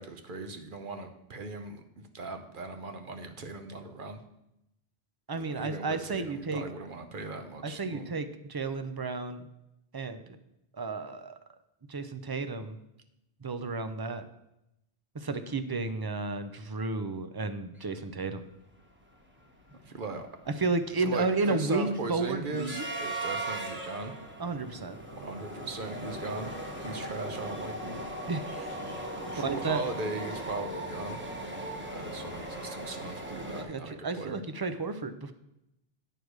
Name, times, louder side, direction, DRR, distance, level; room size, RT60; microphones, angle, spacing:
voice 1, 0.0-4.2 5.3-8.1 19.8-20.3 21.0-24.1 25.1-26.5 26.8-28.0 29.3-31.2 31.9-34.4, right 3 dB, 55° right, 6 dB, 0.9 m, -39 dB
voice 2, 5.3-6.6 7.6-9.4 9.9-10.4 10.7-11.4 11.9-12.8 13.4-14.3 15.1-18.4 20.5-22.9 24.4-25.0 28.3-28.9 29.4-29.8 33.6-35.3, right 3 dB, 30° right, 10 dB, 0.4 m, -32 dB
sound 1, 18.2-18.3 18.6-18.8 19.2-33.6, right 1 dB, 10° right, 1.1 m, -39 dB
8.9 x 4.7 x 6.4 m, 0.86 s
omnidirectional pair, 1.1 m